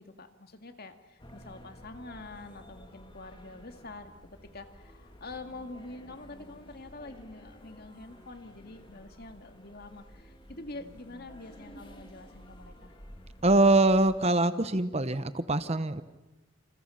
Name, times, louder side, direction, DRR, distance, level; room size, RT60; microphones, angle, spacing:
voice 1, 0.0-12.9, left 2 dB, 45° left, 7 dB, 2.1 m, -46 dB
sound 1, 1.2-14.2, equal, 20° left, 3.1 m, -52 dB
voice 2, 13.4-16.0, right 2 dB, 30° right, 12 dB, 1.0 m, -23 dB
29.5 x 28.0 x 5.7 m, 1.1 s
head